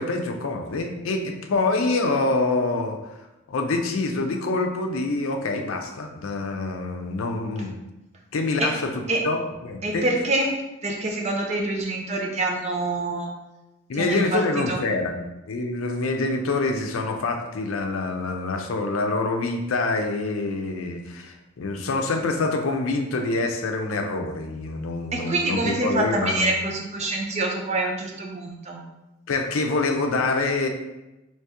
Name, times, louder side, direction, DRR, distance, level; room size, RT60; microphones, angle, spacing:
voice 1, 0.0-3.0 3.5-7.8 8.3-10.0 13.9-26.6 29.3-30.7, left 3 dB, 80° left, 4 dB, 0.5 m, -26 dB
voice 2, 9.8-10.6 10.8-13.3 13.9-14.8 25.1-28.8, right 2 dB, 35° right, 1 dB, 0.5 m, -26 dB
3.4 x 2.9 x 2.9 m, 0.99 s
head